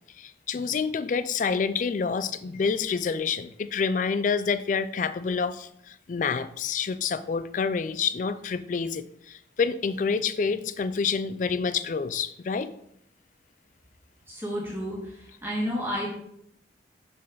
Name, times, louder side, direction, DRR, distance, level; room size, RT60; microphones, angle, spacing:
voice 1, 0.2-12.7, left 5 dB, 45° left, 14 dB, 0.3 m, -28 dB
voice 2, 14.3-16.1, equal, 10° right, -5 dB, 1.9 m, -31 dB
6.9 x 6.4 x 3.9 m, 0.73 s
head